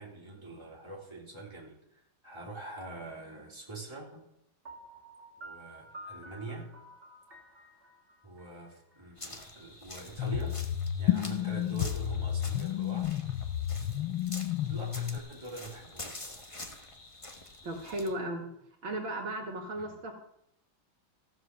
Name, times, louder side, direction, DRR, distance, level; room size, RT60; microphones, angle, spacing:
voice 1, 0.0-4.3 5.4-6.7 8.2-10.6 11.0-13.2 14.6-16.5 19.7-20.0, right 3 dB, 10° right, -4 dB, 3.5 m, -44 dB
Piano, 4.6-9.5, right 1 dB, 30° right, 1.8 m, -50 dB
sound 1, 9.2-18.1, left 2 dB, 20° left, 1.0 m, -47 dB
sound 2, 10.2-15.2, left 12 dB, 75° left, 1.4 m, -31 dB
voice 2, 17.6-18.5 18.8-20.1, right 1 dB, 70° right, 3 dB, 2.6 m, -35 dB
14.5 x 7.9 x 6.8 m, 0.76 s
omnidirectional pair, 2.2 m